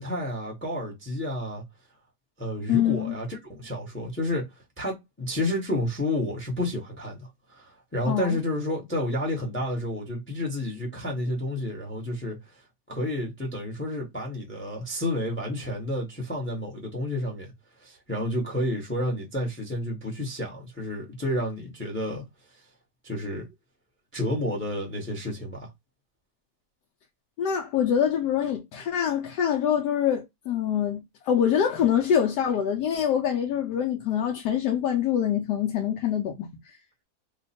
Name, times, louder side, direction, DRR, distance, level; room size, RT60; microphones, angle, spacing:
voice 1, 0.0-1.6 2.4-12.6 12.9-17.5 17.8-22.2 23.0-23.5 24.1-25.7, left 1 dB, 10° left, 0.8 m, -30 dB
voice 2, 2.7-3.2 8.1-8.4 27.4-36.8, left 9 dB, 80° left, 1.2 m, -25 dB
3.1 x 2.2 x 4.0 m
omnidirectional pair, 1.8 m